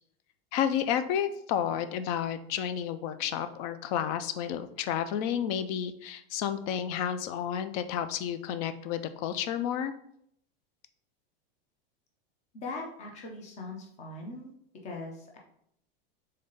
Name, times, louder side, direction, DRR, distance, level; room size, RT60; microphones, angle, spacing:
voice 1, 0.5-9.9, left 9 dB, 40° left, 11 dB, 0.4 m, -31 dB
voice 2, 12.5-14.5 14.8-15.4, left 2 dB, 25° left, 0 dB, 0.8 m, -40 dB
3.8 x 3.5 x 4.0 m, 0.70 s
supercardioid pair, 150°, 30 cm